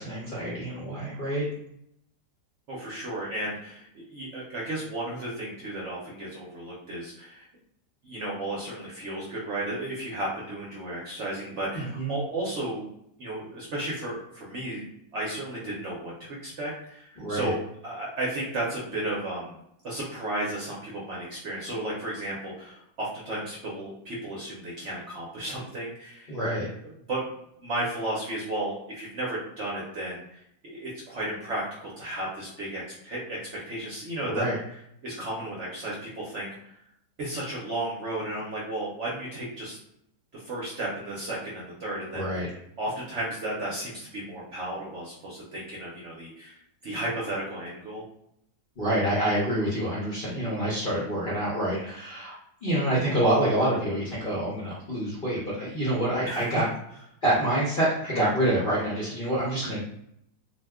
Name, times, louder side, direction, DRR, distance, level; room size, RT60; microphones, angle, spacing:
voice 1, 0.0-1.5 11.7-12.1 17.2-17.5 26.3-26.7 34.3-34.6 42.1-42.5 48.8-52.3 52.6-56.7 57.2-59.8, right 1 dB, 50° left, -7 dB, 0.6 m, -27 dB
voice 2, 2.7-7.5 8.0-12.9 13.2-14.9 15.1-19.6 19.8-26.4 27.1-27.2 27.6-33.4 33.7-34.4 35.0-36.8 37.2-39.8 40.3-42.5 42.8-46.6 46.8-48.0 56.2-56.5, right 1 dB, 60° right, -5 dB, 0.8 m, -34 dB
2.7 x 2.2 x 3.4 m, 0.76 s
omnidirectional pair, 1.8 m